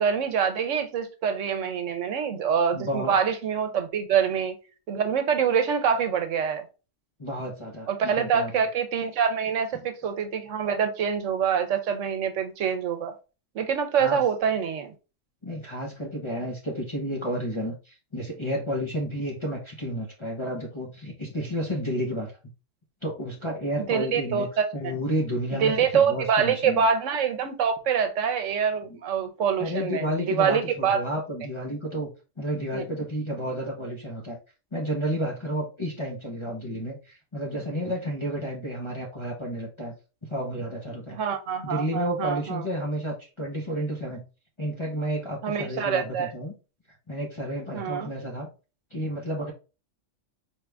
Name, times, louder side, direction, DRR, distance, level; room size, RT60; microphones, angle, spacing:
voice 1, 0.0-4.6 4.9-6.6 7.9-13.1 13.5-14.9 23.8-24.9 25.6-31.0 32.7-32.8 41.1-42.6 45.4-46.3 47.7-48.1, right 7 dB, 70° right, 1.1 m, -25 dB
voice 2, 2.7-3.1 7.2-8.5 13.9-14.2 15.4-22.3 23.0-26.9 28.9-29.0 29.6-32.1 32.4-34.4 34.7-39.9 40.3-41.2 41.6-44.2 44.6-46.5 47.1-48.5 48.9-49.5, equal, 25° left, 0.8 m, -31 dB
4.5 x 2.5 x 3.3 m
omnidirectional pair, 1.3 m